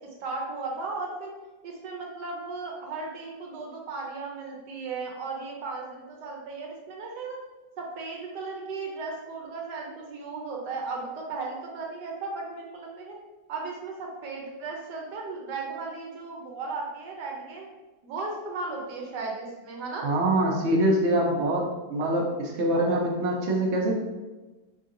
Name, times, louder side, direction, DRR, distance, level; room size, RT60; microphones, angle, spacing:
voice 1, 0.2-1.3 1.6-7.4 7.8-13.2 13.5-17.7 18.0-20.1, right 3 dB, 85° right, -1 dB, 1.3 m, -36 dB
voice 2, 20.0-23.9, right 1 dB, 55° right, -1 dB, 0.8 m, -24 dB
4.6 x 2.7 x 2.5 m, 1.2 s
omnidirectional pair, 1.8 m